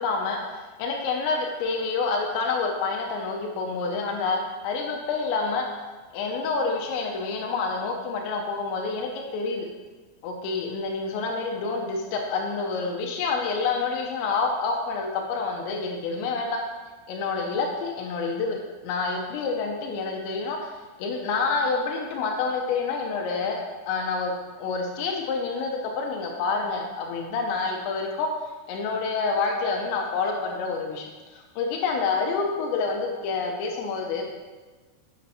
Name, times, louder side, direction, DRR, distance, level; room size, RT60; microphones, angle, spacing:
voice 1, 0.0-5.7 6.1-9.7 10.2-16.6 17.1-20.6 21.0-24.3 24.6-28.3 28.7-31.1 31.3-34.2, left 4 dB, 85° left, 1 dB, 3.1 m, -28 dB
9.5 x 8.3 x 2.8 m, 1.3 s
omnidirectional pair, 5.1 m